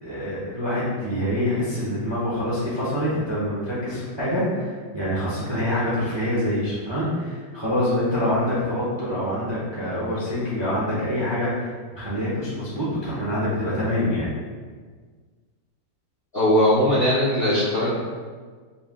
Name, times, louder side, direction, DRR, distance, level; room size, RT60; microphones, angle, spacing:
voice 1, 0.0-14.3, left 1 dB, 40° right, -8 dB, 0.3 m, -25 dB
voice 2, 16.3-17.9, left 1 dB, 60° left, -9 dB, 0.6 m, -19 dB
4.2 x 2.1 x 3.6 m, 1.5 s
omnidirectional pair, 1.8 m